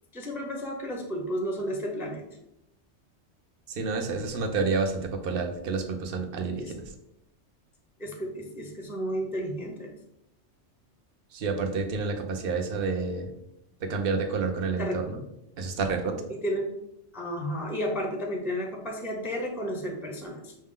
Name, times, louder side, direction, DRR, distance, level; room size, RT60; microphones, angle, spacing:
voice 1, 0.1-2.2 6.6-6.7 8.0-9.9 14.8-15.0 16.3-16.7 17.1-20.5, equal, 5° right, 1 dB, 0.4 m, -32 dB
voice 2, 3.7-6.8 11.3-13.3 13.8-15.2 15.6-16.1, right 4 dB, 60° right, 4 dB, 0.8 m, -29 dB
6.3 x 2.1 x 3.7 m, 0.81 s
omnidirectional pair, 1.2 m